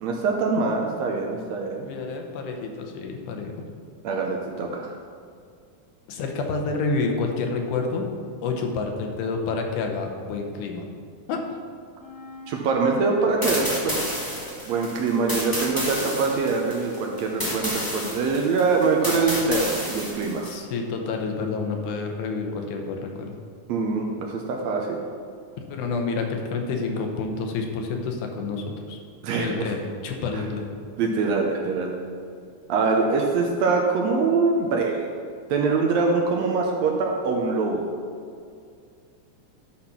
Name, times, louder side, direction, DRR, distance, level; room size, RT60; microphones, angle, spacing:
voice 1, 0.0-1.9 4.0-4.9 12.5-14.0 14.7-20.5 23.7-25.0 29.2-29.7 30.3-30.4 31.0-31.9 32.7-35.2 35.5-37.8, right 4 dB, 75° right, 1 dB, 1.8 m, -24 dB
voice 2, 1.8-3.5 6.1-8.1 8.4-10.8 11.3-11.4 20.4-23.3 25.7-29.0 29.3-30.7, left 4 dB, 85° left, 3 dB, 2.5 m, -29 dB
Wind instrument woodwind instrument, 12.0-17.7, left 3 dB, ahead, 1.4 m, -42 dB
sound 1, 13.4-20.6, equal, 35° left, 0.3 m, -30 dB
11.5 x 4.2 x 5.8 m, 2.2 s
omnidirectional pair, 3.5 m